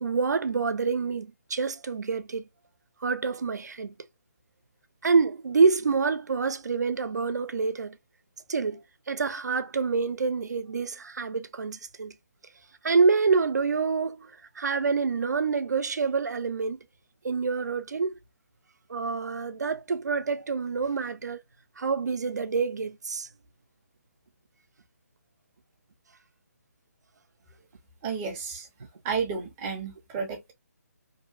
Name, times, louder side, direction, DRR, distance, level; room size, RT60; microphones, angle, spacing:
voice 1, 0.0-2.5 3.0-3.9 5.0-8.0 8.5-12.1 12.8-16.8 17.2-18.1 18.9-21.4 21.8-23.3, right 4 dB, 85° right, 0.5 m, -27 dB
voice 2, 28.0-28.7 29.0-30.5, right 5 dB, 10° right, 0.4 m, -32 dB
2.7 x 2.1 x 2.4 m
hypercardioid pair, 170°, 9 cm